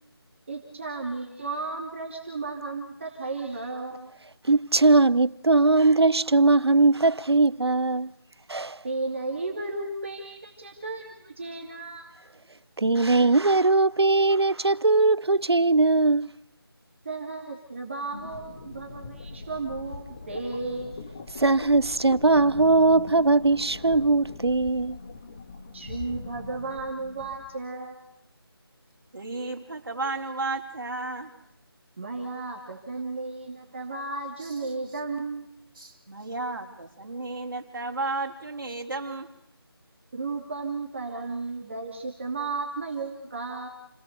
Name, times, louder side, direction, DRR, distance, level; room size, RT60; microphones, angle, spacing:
voice 1, 0.5-4.1 8.8-12.3 17.0-21.0 25.7-28.0 32.0-35.5 40.1-43.7, right 3 dB, 30° right, 2.8 m, -34 dB
voice 2, 4.4-8.1 8.5-8.8 12.8-16.3 21.3-25.0, right 3 dB, 90° right, 0.9 m, -20 dB
sound 1, 18.1-27.5, left 4 dB, 25° left, 2.2 m, -41 dB
voice 3, 29.1-31.3 34.4-34.6 35.8-39.3, right 3 dB, 50° right, 4.7 m, -33 dB
30.0 x 19.5 x 6.8 m
figure-of-eight pair, 170°, 13 cm